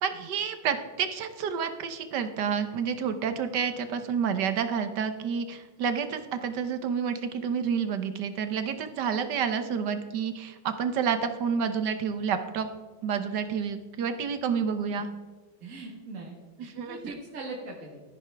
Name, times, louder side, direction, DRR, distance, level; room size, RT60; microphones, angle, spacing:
voice 1, 0.0-12.7 13.0-15.1 16.8-17.1, right 7 dB, 70° right, 9 dB, 1.5 m, -29 dB
voice 2, 15.6-18.0, right 3 dB, 45° right, -1 dB, 1.8 m, -41 dB
13.0 x 10.5 x 3.5 m, 1.4 s
omnidirectional pair, 2.0 m